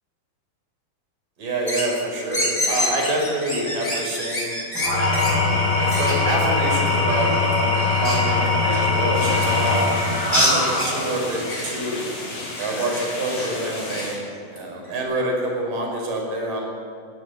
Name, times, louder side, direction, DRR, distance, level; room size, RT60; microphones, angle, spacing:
voice 1, 1.4-4.5 5.1-10.0 10.3-12.0 12.6-14.2 14.5-16.7, right 1 dB, 75° right, -1 dB, 6.9 m, -26 dB
sound 1, 1.7-1.9 2.3-5.4 5.8-6.2 6.9-9.5 10.3-11.7 12.4-13.5 13.9-14.1 14.6-14.7 14.9-15.0, equal, 10° left, 4.8 m, -27 dB
Engine / Tools, 4.7-11.2, left 3 dB, 35° left, 7.6 m, -21 dB
sound 2, 9.1-14.2, left 2 dB, 60° left, 5.8 m, -33 dB
21.5 x 16.5 x 7.8 m, 2.3 s
omnidirectional pair, 3.9 m